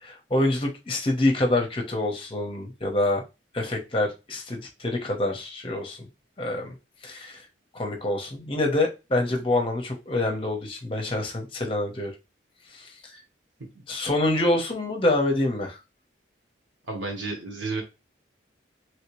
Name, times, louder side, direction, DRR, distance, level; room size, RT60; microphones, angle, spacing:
voice 1, 0.0-3.2 3.5-6.0 6.4-6.7 7.0-7.4 7.7-12.1 12.7-13.2 13.9-15.8, left 1 dB, 30° left, 2 dB, 0.8 m, -26 dB
voice 2, 16.9-17.8, right 3 dB, 85° right, 0 dB, 1.1 m, -31 dB
3.1 x 2.8 x 3.0 m, 0.27 s
head